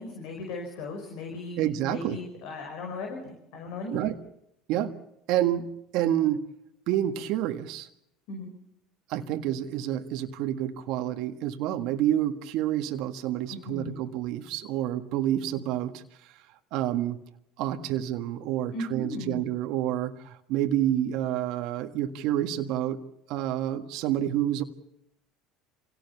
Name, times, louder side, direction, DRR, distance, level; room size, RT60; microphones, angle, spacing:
voice 1, 0.0-4.1 8.3-8.5 13.5-14.0 18.7-19.5, left 3 dB, 70° left, 3 dB, 5.4 m, -37 dB
voice 2, 1.6-2.2 3.9-4.2 4.7-5.0 5.3-6.4 6.9-7.9 9.1-16.4 16.7-17.2 17.6-23.0 23.3-24.6, right 12 dB, 65° right, 7 dB, 1.6 m, -28 dB
26.5 x 17.5 x 7.0 m, 0.80 s
hypercardioid pair, 80°, 0 cm